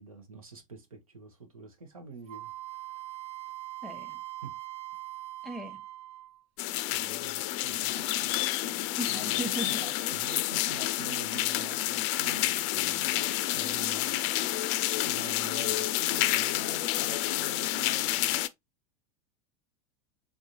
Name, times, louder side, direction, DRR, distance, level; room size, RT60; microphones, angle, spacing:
voice 1, 0.0-2.5 4.4-4.6 6.9-8.3 9.1-13.1 13.5-14.5 14.9-18.4, right 5 dB, 75° right, 1.1 m, -47 dB
Wind instrument woodwind instrument, 2.3-6.4, right 15 dB, 35° right, 0.4 m, -42 dB
voice 2, 3.8-4.2 5.4-5.8 9.0-9.8, right 1 dB, ahead, 1.0 m, -37 dB
sound 1, 6.6-18.5, left 15 dB, 40° left, 0.4 m, -29 dB
3.9 x 3.6 x 2.9 m
figure-of-eight pair, 85°, 18 cm